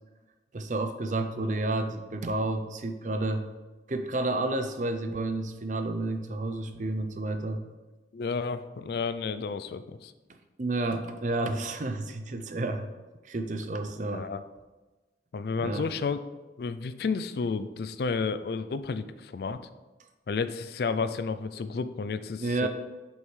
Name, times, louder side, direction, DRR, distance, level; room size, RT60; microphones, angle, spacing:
voice 1, 0.5-3.4 3.9-7.6 10.6-12.9 13.2-14.2 15.6-15.9 22.4-22.7, right 2 dB, 45° right, 7 dB, 0.6 m, -30 dB
voice 2, 8.1-10.1 14.1-14.4 15.3-16.2 16.6-19.6 20.3-22.7, left 4 dB, 60° left, 12 dB, 0.4 m, -31 dB
7.7 x 5.4 x 3.3 m, 1.2 s
head